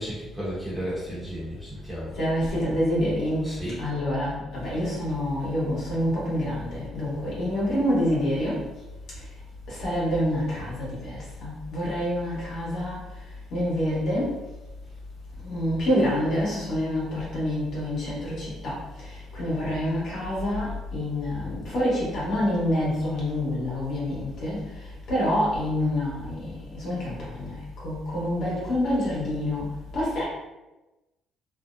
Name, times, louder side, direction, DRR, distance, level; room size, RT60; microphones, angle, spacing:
voice 1, 0.0-2.2 3.4-3.8, equal, 5° right, -9 dB, 0.9 m, -33 dB
voice 2, 2.1-3.5 3.8-8.6 9.1-9.2 9.7-13.0 13.5-14.3 15.4-29.6 29.9-30.2, left 1 dB, 60° left, -7 dB, 1.2 m, -27 dB
2.7 x 2.0 x 2.5 m, 1.0 s
cardioid pair, 145°, 0 cm